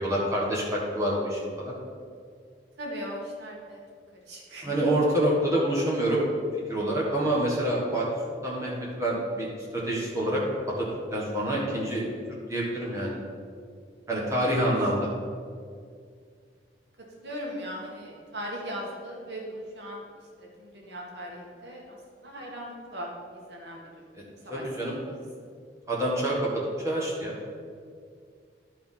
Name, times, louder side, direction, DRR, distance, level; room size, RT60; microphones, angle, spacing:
voice 1, 0.0-1.7 4.6-6.2 6.7-8.0 8.4-10.4 10.8-10.9 11.1-12.0 12.5-13.2 14.1-15.1 24.1-24.2 24.5-25.0 25.9-26.5 26.8-27.4, right 1 dB, 15° right, -5 dB, 1.5 m, -27 dB
voice 2, 2.8-3.8 4.3-4.8 14.4-14.5 17.2-20.0 20.4-22.0 22.2-23.1 23.5-24.1 24.4-24.6, equal, 75° right, -2 dB, 1.8 m, -38 dB
11.0 x 4.4 x 5.6 m, 2.2 s
head